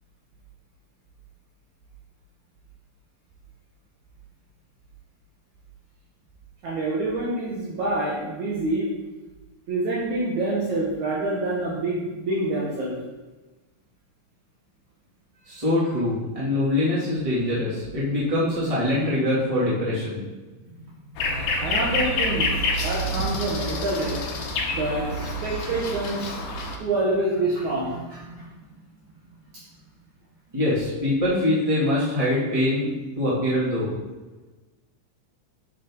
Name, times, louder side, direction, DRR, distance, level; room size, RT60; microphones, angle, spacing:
voice 1, 6.6-8.9 9.7-12.9 21.6-26.5 26.8-28.5 29.5-29.6, right 2 dB, 60° right, -5 dB, 2.3 m, -27 dB
voice 2, 15.5-20.2 30.5-32.9 33.2-33.9, left 1 dB, 10° right, -8 dB, 2.1 m, -23 dB
sound 1, 21.2-26.8, left 2 dB, 70° left, 2.3 m, -27 dB
8.4 x 6.3 x 3.9 m, 1.2 s
omnidirectional pair, 4.2 m